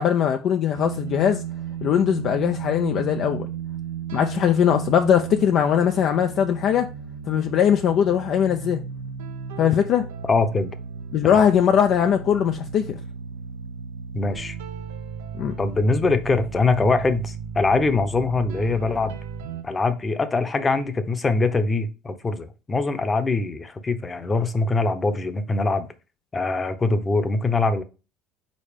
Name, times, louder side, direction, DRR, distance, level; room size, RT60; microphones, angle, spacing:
voice 1, 0.0-1.4 1.8-3.5 4.1-6.9 7.3-8.8 9.6-10.1 11.1-12.9 15.4-15.5, left 9 dB, 55° left, 0.5 m, -20 dB
sound 1, 0.7-19.6, right 7 dB, 90° right, 0.7 m, -34 dB
voice 2, 10.3-10.7 11.2-11.4 14.1-14.6 15.6-19.2 19.6-25.9 26.3-27.8, left 3 dB, 25° left, 0.9 m, -23 dB
5.3 x 4.2 x 5.0 m
supercardioid pair, 95°, 0 cm